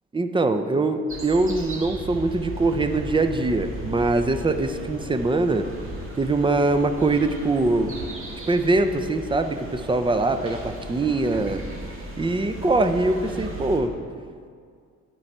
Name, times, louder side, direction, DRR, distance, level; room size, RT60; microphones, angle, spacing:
voice 1, 0.1-5.7 6.1-7.9 8.5-11.6 12.2-13.9, right 2 dB, 15° right, 8 dB, 0.6 m, -23 dB
sound 1, 1.1-13.8, right 2 dB, 45° right, 1.9 m, -36 dB
12.5 x 4.7 x 4.4 m, 2.2 s
cardioid pair, 90°, 30 cm